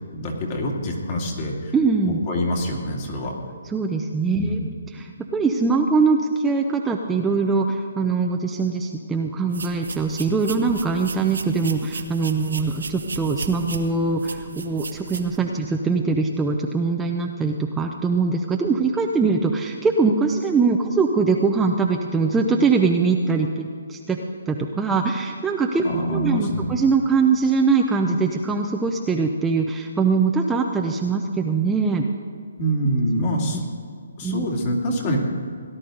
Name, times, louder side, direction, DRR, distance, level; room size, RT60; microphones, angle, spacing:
voice 1, 0.1-1.7 2.3-3.3 4.4-4.7 25.8-26.7 32.6-33.6 34.2-35.2, equal, 35° left, 0 dB, 2.6 m, -25 dB
voice 2, 1.7-2.2 3.6-4.6 4.9-24.2 24.5-25.8 26.1-32.1 33.4-33.6 34.2-34.5, right 4 dB, 10° right, 2 dB, 0.6 m, -22 dB
sound 1, 9.5-15.4, right 4 dB, 85° right, 1.3 m, -35 dB
17.5 x 11.5 x 3.9 m, 2.3 s
hypercardioid pair, 155°, 0 cm